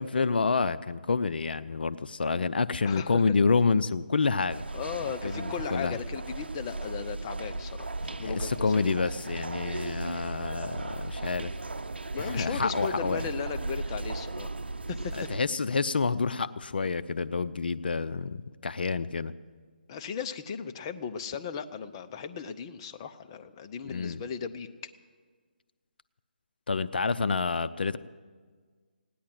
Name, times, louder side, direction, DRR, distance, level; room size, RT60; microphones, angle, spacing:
voice 1, 0.0-4.6 5.2-6.0 8.2-11.5 12.2-13.3 15.1-19.3 23.9-24.2 26.7-28.0, left 4 dB, 70° left, 13 dB, 0.5 m, -28 dB
voice 2, 2.8-3.3 4.7-8.8 12.1-14.5 14.9-15.3 19.9-24.7, left 6 dB, 25° left, 8 dB, 0.6 m, -36 dB
sound 1, 4.5-15.4, right 2 dB, 85° right, 0.7 m, -36 dB
17.0 x 10.0 x 7.6 m, 1.5 s
figure-of-eight pair, 155°, 6 cm